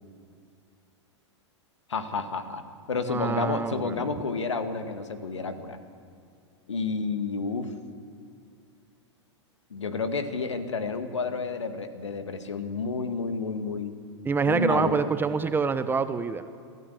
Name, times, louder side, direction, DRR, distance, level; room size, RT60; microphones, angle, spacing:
voice 1, 1.9-2.6 2.9-5.8 6.7-7.7 9.7-13.9 14.4-15.1, left 4 dB, 75° left, 9 dB, 1.8 m, -30 dB
voice 2, 3.0-4.1 14.2-16.4, right 5 dB, 15° right, 12 dB, 0.8 m, -26 dB
24.0 x 14.0 x 8.5 m, 2.3 s
figure-of-eight pair, 95°, 15 cm